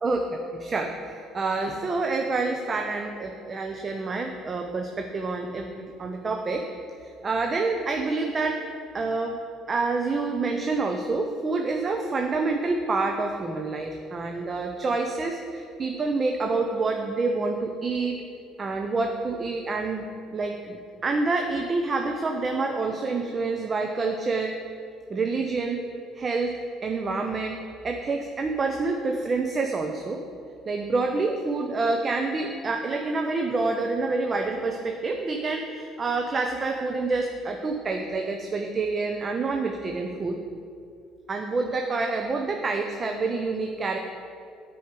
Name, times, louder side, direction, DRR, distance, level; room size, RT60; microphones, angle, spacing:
voice 1, 0.0-6.7 7.0-8.6 8.9-9.4 9.7-18.2 18.6-20.1 20.3-20.8 21.0-24.6 25.1-25.8 26.1-26.5 26.8-30.2 30.7-40.4 41.3-44.0, right 3 dB, 35° right, 4 dB, 0.6 m, -27 dB
9.3 x 4.7 x 4.9 m, 2.4 s
hypercardioid pair, 60°, 0 cm